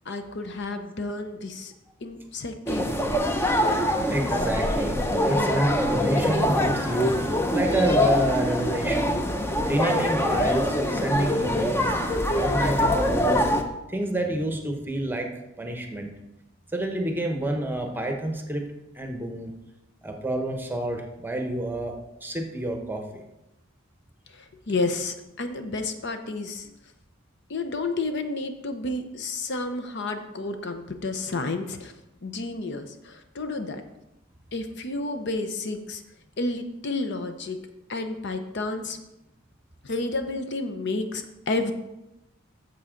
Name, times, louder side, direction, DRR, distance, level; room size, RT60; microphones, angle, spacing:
voice 1, 0.1-1.7 2.0-3.0 24.3-26.7 27.5-31.9 32.2-33.8 34.5-36.0 36.4-37.6 37.9-39.0 39.8-41.7, left 3 dB, 55° left, 8 dB, 0.7 m, -31 dB
sound 1, 2.7-13.6, left 1 dB, 10° left, 0.6 m, -24 dB
voice 2, 3.7-9.2 9.6-12.0 12.3-13.5 13.9-15.3 15.6-16.1 16.7-18.6 18.9-19.5 20.0-21.9 22.2-23.0, right 1 dB, 10° right, 3 dB, 0.9 m, -28 dB
9.5 x 7.0 x 3.8 m, 0.92 s
head